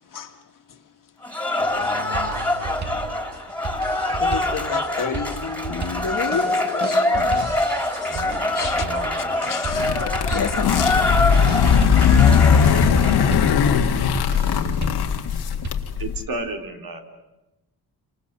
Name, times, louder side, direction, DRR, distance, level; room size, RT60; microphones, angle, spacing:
Cheering / Applause, 1.2-13.8, left 1 dB, 5° left, 3.3 m, -25 dB
voice 1, 1.6-3.2 8.1-9.4, right 1 dB, 80° right, 6.2 m, -38 dB
sound 1, 1.7-15.7, right 4 dB, 45° right, 2.3 m, -35 dB
voice 2, 4.2-7.5 7.8-8.2 8.5-8.8 9.4-11.1, left 6 dB, 55° left, 2.0 m, -30 dB
sound 2, 9.7-16.2, left 7 dB, 85° left, 2.0 m, -18 dB
voice 3, 16.0-17.0, right 2 dB, 60° right, 3.9 m, -30 dB
30.0 x 26.5 x 6.9 m
wide cardioid pair, 135°, 38 cm